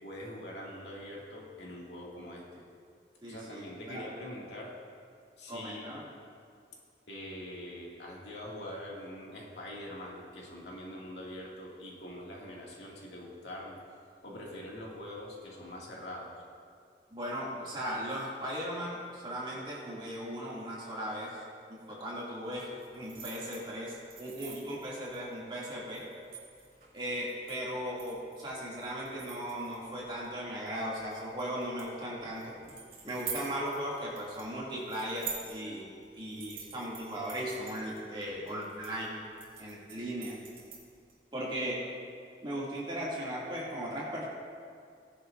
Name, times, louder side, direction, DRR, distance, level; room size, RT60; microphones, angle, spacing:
voice 1, 0.0-2.6 3.2-4.8 5.4-6.0 7.1-13.8 14.2-16.3, left 1 dB, 80° left, -4 dB, 2.3 m, -44 dB
voice 2, 3.2-4.1 5.5-6.0 17.1-21.4 21.7-26.1 26.9-32.5 33.0-35.9 36.1-39.2 39.6-40.4 41.3-41.8 42.4-44.2, equal, 25° right, -6 dB, 2.4 m, -37 dB
sound 1, 22.5-41.1, right 6 dB, 50° right, 2.8 m, -48 dB
17.0 x 10.5 x 2.6 m, 2.2 s
head